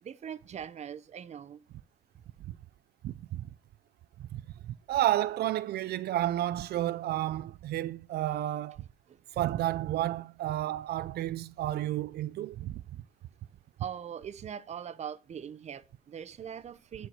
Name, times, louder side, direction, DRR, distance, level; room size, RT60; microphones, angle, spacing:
voice 1, 0.0-1.6 9.1-9.2 13.8-17.1, right 8 dB, 45° right, 0.8 m, -41 dB
voice 2, 3.0-3.5 4.3-8.8 9.3-12.7, right 13 dB, 85° right, 0.5 m, -31 dB
12.5 x 4.6 x 6.7 m
wide cardioid pair, 165°, 16 cm